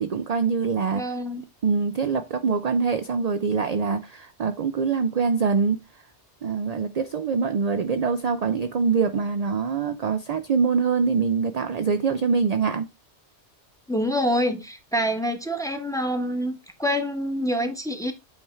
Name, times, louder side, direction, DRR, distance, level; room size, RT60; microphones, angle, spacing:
voice 1, 0.0-1.0 1.6-5.8 6.4-12.9, right 5 dB, 50° right, 0.5 m, -24 dB
voice 2, 0.9-1.4 13.9-18.1, equal, 5° left, 1.0 m, -26 dB
8.8 x 3.5 x 4.4 m
omnidirectional pair, 1.2 m